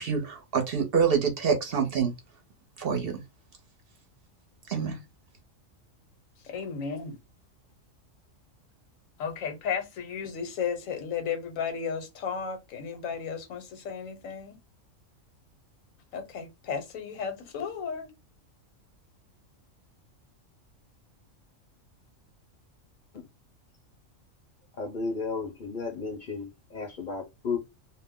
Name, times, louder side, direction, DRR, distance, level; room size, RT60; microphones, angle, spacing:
voice 1, 0.0-2.1 2.8-3.2 4.7-5.0, right 6 dB, 55° right, 0.8 m, -26 dB
voice 2, 6.5-7.2 9.2-14.6 16.1-18.1, left 6 dB, 85° left, 1.1 m, -34 dB
voice 3, 24.8-27.6, left 4 dB, 50° left, 0.6 m, -33 dB
2.5 x 2.0 x 3.5 m
omnidirectional pair, 1.3 m